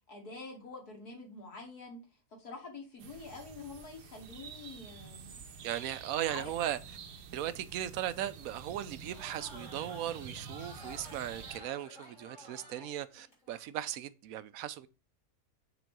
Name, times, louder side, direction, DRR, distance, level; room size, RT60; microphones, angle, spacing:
voice 1, 0.1-2.0 2.4-5.4 6.3-6.5, left 3 dB, 70° left, 3.0 m, -46 dB
sound 1, 3.0-11.6, right 5 dB, 85° right, 1.5 m, -49 dB
voice 2, 5.6-6.8 7.3-14.9, right 12 dB, 70° right, 1.0 m, -37 dB
Crowd, 8.8-13.6, equal, 50° left, 3.8 m, -52 dB
6.9 x 4.2 x 6.0 m
omnidirectional pair, 1.7 m